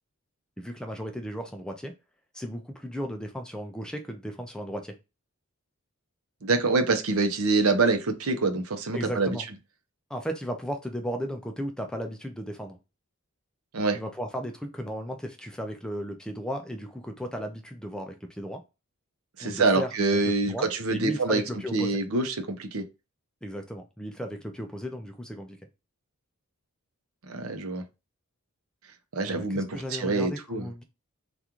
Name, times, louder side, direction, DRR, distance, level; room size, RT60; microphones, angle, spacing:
voice 1, 0.6-1.9 2.3-4.9 8.9-9.4 10.1-12.8 13.9-18.6 19.4-22.0 23.4-25.6 29.2-30.8, equal, 5° left, 0.4 m, -35 dB
voice 2, 6.4-9.4 13.7-14.0 19.4-21.4 21.7-22.8 27.3-27.8 29.1-30.7, right 3 dB, 70° right, 0.7 m, -25 dB
3.6 x 2.4 x 2.9 m
head